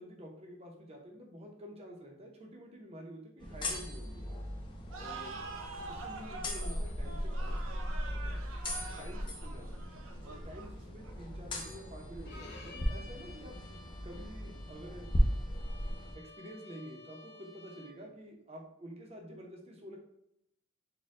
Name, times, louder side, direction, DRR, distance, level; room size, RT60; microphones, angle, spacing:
voice 1, 0.0-4.3 5.0-5.4 5.8-7.6 8.1-8.4 9.0-9.8 10.2-15.1 15.6-15.7 16.1-20.0, equal, 30° right, 1 dB, 0.7 m, -49 dB
sound 1, 3.4-16.1, equal, 25° left, 0.5 m, -37 dB
sound 2, 4.9-11.4, right 3 dB, 90° right, 0.5 m, -46 dB
Bowed string instrument, 12.3-18.1, left 3 dB, 55° left, 0.8 m, -54 dB
4.3 x 2.2 x 3.6 m, 0.80 s
head